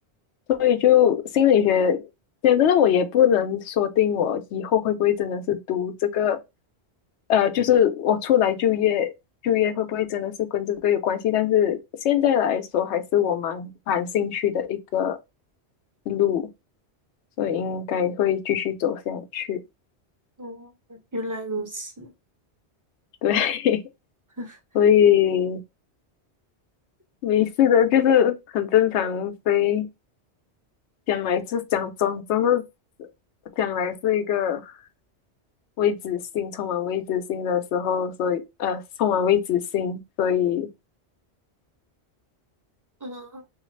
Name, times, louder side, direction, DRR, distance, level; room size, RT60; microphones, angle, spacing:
voice 1, 0.5-2.0 2.4-6.4 7.3-9.1 9.4-15.2 16.1-16.4 17.4-19.6 23.2-23.8 24.7-25.6 27.2-29.9 31.1-32.6 33.6-34.7 35.8-40.7, left 9 dB, 85° left, 0.9 m, -22 dB
voice 2, 20.4-22.1 24.4-24.6 43.0-43.4, right 1 dB, 20° right, 0.6 m, -34 dB
3.2 x 2.3 x 3.1 m
omnidirectional pair, 1.1 m